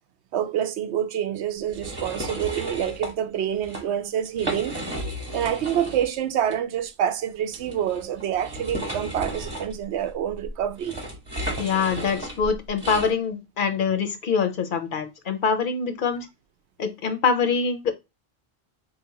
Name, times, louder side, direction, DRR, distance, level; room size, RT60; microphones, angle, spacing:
voice 1, 0.3-4.8 5.3-10.9, right 9 dB, 85° right, 0.9 m, -27 dB
sound 1, 1.7-3.1 3.5-3.8 4.3-6.1 6.5-6.6 7.5-13.1, right 1 dB, 25° right, 1.0 m, -34 dB
voice 2, 11.6-16.3 16.8-17.9, left 5 dB, 60° left, 0.7 m, -24 dB
3.9 x 2.8 x 2.7 m
omnidirectional pair, 1.1 m